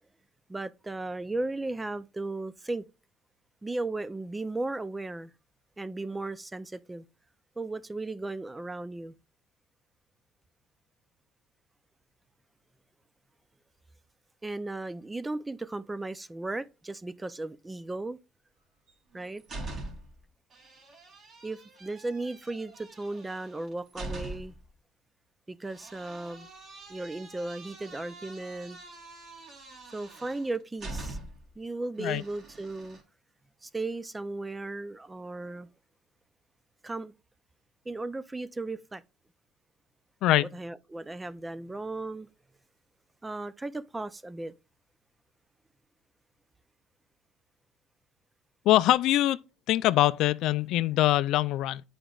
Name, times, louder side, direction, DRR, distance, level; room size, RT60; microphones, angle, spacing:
voice 1, 0.5-2.8 3.6-5.3 5.8-7.0 7.6-9.2 14.4-18.2 19.1-19.4 21.4-24.5 25.5-26.5 26.9-28.8 29.9-31.2 31.6-33.0 33.6-35.7 36.8-37.1 37.9-39.0 40.4-42.3 43.2-44.5, right 2 dB, 15° right, 0.4 m, -36 dB
sound 1, 18.9-20.2 20.5-24.7 25.7-31.5 32.0-33.0, right 2 dB, 45° right, 2.7 m, -44 dB
voice 2, 48.7-49.4 49.7-51.8, left 15 dB, 70° left, 0.3 m, -23 dB
9.1 x 4.9 x 2.3 m
cardioid pair, 110°, 0 cm